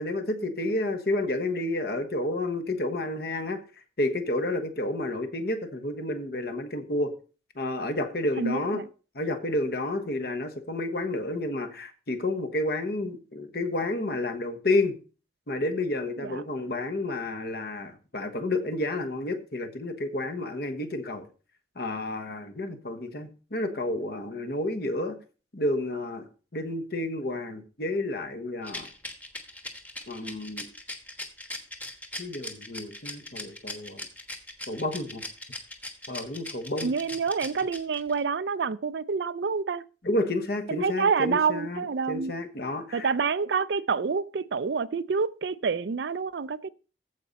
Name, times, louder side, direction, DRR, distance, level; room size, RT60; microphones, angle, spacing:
voice 1, 0.0-3.6 4.0-7.1 7.5-8.8 9.1-14.9 15.5-21.3 21.7-25.2 25.5-28.9 30.1-30.7 32.2-34.1 34.7-35.2 36.1-36.9 40.0-43.1, left 2 dB, 55° left, 1.2 m, -30 dB
voice 2, 8.4-8.8 16.2-16.4 36.8-39.8 40.7-42.3 42.9-46.7, right 5 dB, 70° right, 0.4 m, -27 dB
Rattle, 28.6-38.2, left 1 dB, 10° left, 1.2 m, -39 dB
14.5 x 5.2 x 4.1 m
head